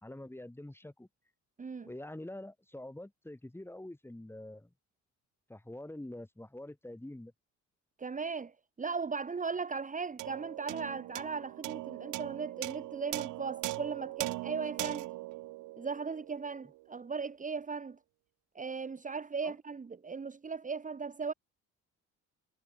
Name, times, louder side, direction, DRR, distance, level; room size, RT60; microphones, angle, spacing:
voice 1, 0.0-1.1 1.8-4.7 5.5-7.3 19.4-19.6, left 1 dB, 10° left, 3.0 m, -45 dB
voice 2, 1.6-1.9 8.0-15.1 15.8-18.0 18.5-21.3, right 5 dB, 25° right, 1.2 m, -37 dB
sound 1, 10.2-16.8, right 19 dB, 90° right, 0.6 m, -40 dB
cardioid pair, 90°, 30 cm